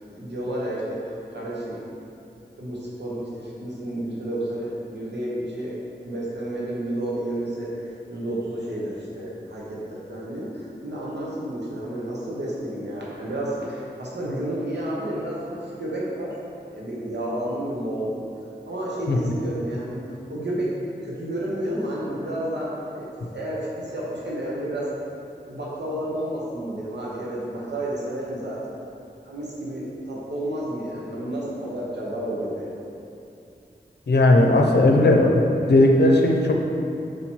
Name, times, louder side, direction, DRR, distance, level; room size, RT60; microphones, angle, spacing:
voice 1, 0.0-1.8 2.6-5.7 6.0-16.3 16.7-18.1 18.7-19.9 20.3-20.7 21.0-24.9 25.4-28.7 29.2-32.7, right 1 dB, 80° right, -6 dB, 1.1 m, -31 dB
voice 2, 34.1-35.4 35.7-36.5, left 1 dB, 70° left, 1 dB, 0.6 m, -16 dB
4.9 x 4.3 x 4.5 m, 2.6 s
wide cardioid pair, 75°, 18 cm